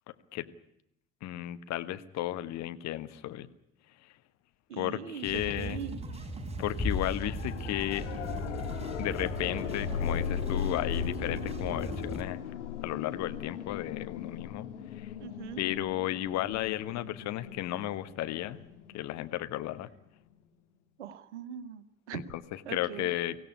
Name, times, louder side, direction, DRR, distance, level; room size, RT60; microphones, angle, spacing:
voice 1, 1.2-3.5 4.8-5.8 6.6-8.1 9.0-12.4 12.8-14.7 15.0-15.1 15.6-18.6 18.9-19.9 22.1-23.4, left 14 dB, 50° left, 11 dB, 1.4 m, -34 dB
voice 2, 4.7-5.3 5.6-6.0 15.2-15.6 21.0-22.2 22.6-23.1, right 8 dB, 70° right, 13 dB, 1.4 m, -41 dB
sound 1, 5.2-12.2, right 2 dB, 15° right, 4.8 m, -39 dB
sound 2, 6.8-8.2, left 4 dB, 5° left, 4.3 m, -35 dB
sound 3, 7.1-19.9 22.3-22.4, left 8 dB, 70° left, 1.7 m, -38 dB
24.0 x 16.5 x 9.7 m, 0.82 s
figure-of-eight pair, 55°, 36 cm